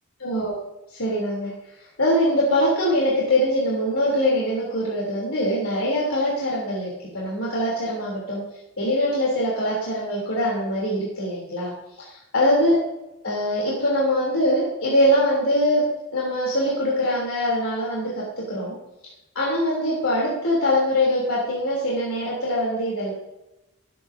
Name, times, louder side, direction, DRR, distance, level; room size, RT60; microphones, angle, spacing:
voice 1, 0.2-0.6 0.9-1.5 1.8-8.4 8.8-11.7 12.0-12.8 13.2-18.7 19.3-23.1, equal, 90° left, -5 dB, 3.4 m, -23 dB
17.0 x 9.2 x 2.8 m, 0.92 s
head